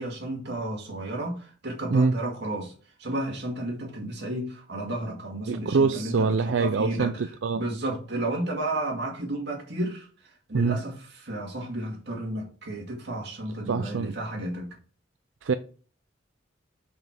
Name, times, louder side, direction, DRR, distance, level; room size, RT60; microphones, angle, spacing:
voice 1, 0.0-2.7 3.0-7.2 7.5-10.1 10.5-14.8, right 1 dB, 65° right, 2.2 m, -32 dB
voice 2, 5.5-7.6 10.5-10.8 13.7-14.2 15.4-15.5, right 4 dB, 85° right, 0.5 m, -24 dB
5.6 x 5.5 x 6.0 m
head